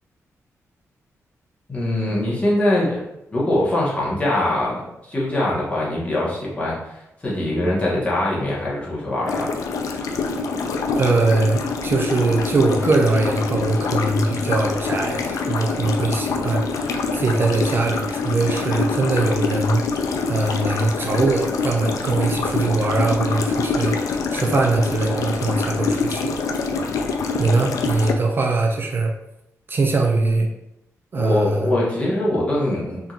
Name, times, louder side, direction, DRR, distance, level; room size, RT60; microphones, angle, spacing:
voice 1, 1.7-3.0 3.3-9.5 30.1-30.4 31.1-33.1, left 1 dB, 25° left, -6 dB, 1.2 m, -23 dB
sound 1, 9.3-28.1, left 4 dB, 85° left, 0.3 m, -25 dB
voice 2, 11.0-16.8 17.1-19.8 20.2-24.0 24.3-26.3 27.4-29.1 29.7-30.5 31.1-31.7, right 3 dB, 40° right, 1 dB, 0.4 m, -21 dB
3.5 x 2.8 x 2.4 m, 0.85 s
wide cardioid pair, 115°, 6 cm